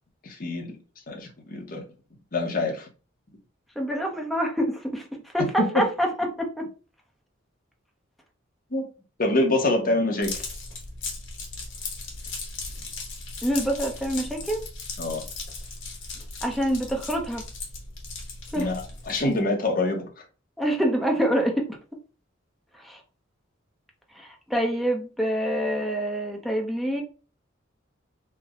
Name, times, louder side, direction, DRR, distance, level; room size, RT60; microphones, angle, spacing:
voice 1, 0.2-0.8 1.1-1.8 2.3-2.9 5.4-5.5 5.7-5.8 8.7-8.8 9.2-10.4 15.0-15.2 18.6-20.0, left 2 dB, 45° left, 2 dB, 0.8 m, -25 dB
voice 2, 3.8-5.1 5.3-6.7 13.4-14.6 16.4-17.4 18.5-18.7 20.6-21.7 22.8-23.0 24.1-27.0, equal, ahead, 1 dB, 0.6 m, -26 dB
sound 1, 10.2-19.4, left 3 dB, 70° left, 1.0 m, -37 dB
3.3 x 2.0 x 3.5 m, 0.35 s
head